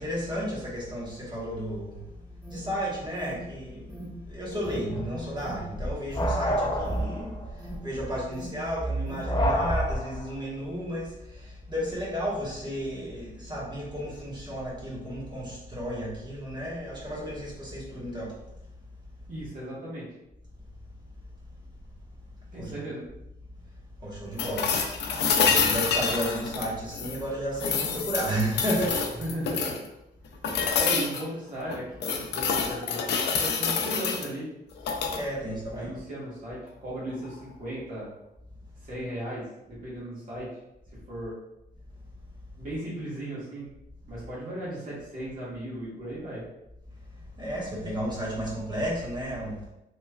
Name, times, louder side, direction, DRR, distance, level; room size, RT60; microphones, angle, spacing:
voice 1, 0.0-2.0 2.5-7.4 7.8-18.3 22.5-22.7 24.0-29.0 30.5-30.8 35.1-35.9 47.4-49.6, equal, 25° right, -5 dB, 1.1 m, -33 dB
Alarm, 1.9-9.4, right 1 dB, ahead, 1.0 m, -46 dB
sound 1, 4.6-10.3, equal, 25° left, 0.4 m, -29 dB
voice 2, 19.3-20.1 22.5-23.1 29.2-29.7 30.7-34.5 35.7-38.1 38.8-40.5 41.1-41.4 42.6-43.7 44.1-46.4, right 1 dB, 50° right, -8 dB, 1.4 m, -36 dB
sound 2, 24.4-27.2 27.6-29.9 30.4-31.2 31.7-34.3 34.8-35.2 37.2-37.3, left 6 dB, 85° left, 0.4 m, -27 dB
3.1 x 3.0 x 2.3 m, 0.87 s
cardioid pair, 115°, 17 cm